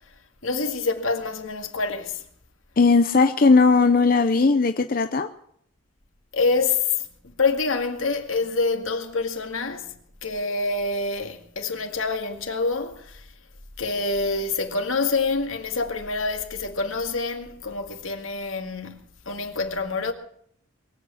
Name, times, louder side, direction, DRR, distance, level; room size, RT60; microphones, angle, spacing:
voice 1, 0.4-2.2 6.3-9.9 10.2-13.3 13.8-19.0 19.3-20.1, left 3 dB, 80° left, 2.2 m, -26 dB
voice 2, 2.8-5.3, left 4 dB, 45° left, 0.6 m, -18 dB
22.5 x 8.6 x 7.1 m
head